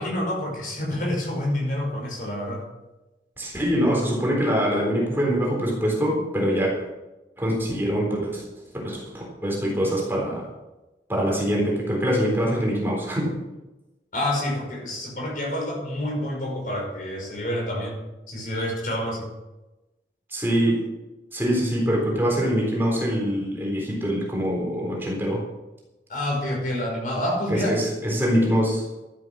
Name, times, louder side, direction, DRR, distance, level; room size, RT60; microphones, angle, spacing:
voice 1, 0.0-2.6 14.1-18.0 18.3-19.3 26.1-27.8, left 1 dB, 50° left, -1 dB, 5.6 m, -28 dB
voice 2, 3.4-6.7 7.4-8.4 8.8-10.4 11.1-13.3 20.3-20.8 21.3-25.4 27.5-28.8, equal, 10° right, -2 dB, 3.8 m, -24 dB
13.5 x 11.0 x 6.1 m, 1.0 s
head